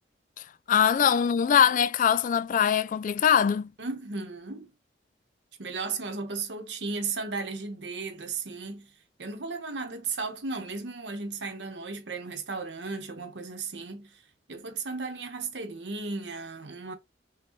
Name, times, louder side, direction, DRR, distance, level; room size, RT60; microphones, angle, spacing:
voice 1, 0.7-3.7, left 8 dB, 45° left, 0.3 m, -22 dB
voice 2, 3.8-4.7 5.6-8.9 9.2-14.2 14.5-16.9, right 4 dB, 75° right, 1.1 m, -35 dB
5.9 x 2.2 x 3.1 m
head